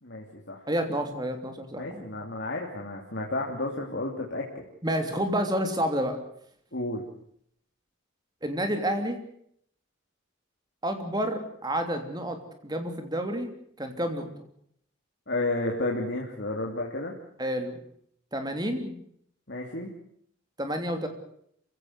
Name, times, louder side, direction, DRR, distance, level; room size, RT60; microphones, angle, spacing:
voice 1, 0.0-0.6 1.8-4.5 6.7-7.0 15.3-17.1 19.5-19.9, left 2 dB, 55° left, -1 dB, 2.9 m, -31 dB
voice 2, 0.7-2.2 4.8-6.2 8.4-9.2 10.8-12.4 12.6-13.5 13.8-14.3 17.4-17.8 18.3-19.0 20.6-21.1, equal, 20° right, 6 dB, 3.1 m, -29 dB
27.5 x 16.5 x 8.0 m, 0.68 s
head